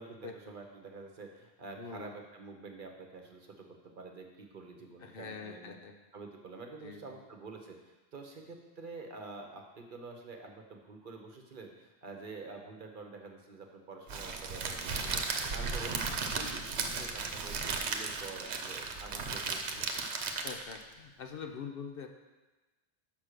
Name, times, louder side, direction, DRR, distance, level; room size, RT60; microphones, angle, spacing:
voice 1, 0.0-5.8 6.1-7.8 8.1-15.2 15.5-19.9, right 3 dB, 50° right, 3 dB, 1.0 m, -48 dB
voice 2, 1.8-2.1 5.0-5.9 6.8-7.2 20.4-22.1, left 6 dB, 65° left, 4 dB, 0.9 m, -44 dB
Crackle, 14.1-20.8, right 4 dB, 85° right, 1.0 m, -35 dB
6.1 x 5.7 x 6.6 m, 1.2 s
omnidirectional pair, 1.1 m